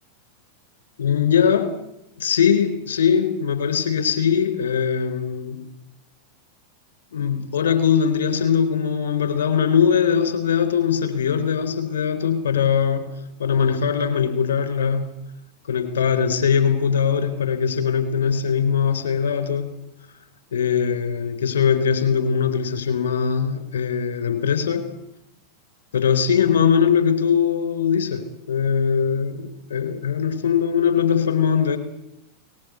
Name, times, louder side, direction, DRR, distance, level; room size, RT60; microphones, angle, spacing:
voice 1, 1.0-1.7 2.2-5.6 7.1-13.1 13.4-15.1 15.7-19.7 20.5-24.9 25.9-31.8, left 7 dB, 60° left, 10 dB, 4.1 m, -21 dB
22.0 x 20.0 x 8.3 m, 0.82 s
figure-of-eight pair, 90°, 0 cm